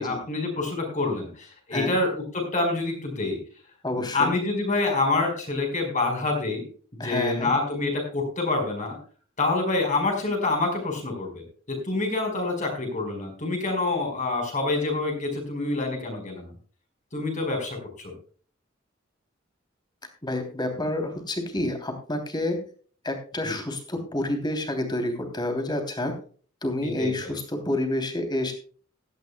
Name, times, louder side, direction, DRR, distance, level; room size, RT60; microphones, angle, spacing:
voice 1, 0.0-3.4 4.1-6.7 6.9-9.0 9.4-16.5 17.1-18.1 23.4-23.6 26.8-27.4, left 2 dB, 40° left, 3 dB, 4.8 m, -27 dB
voice 2, 3.8-4.3 7.0-7.5 20.2-22.6 23.0-26.1 26.6-28.5, left 1 dB, 20° left, 5 dB, 3.1 m, -29 dB
17.0 x 13.0 x 2.3 m, 0.41 s
head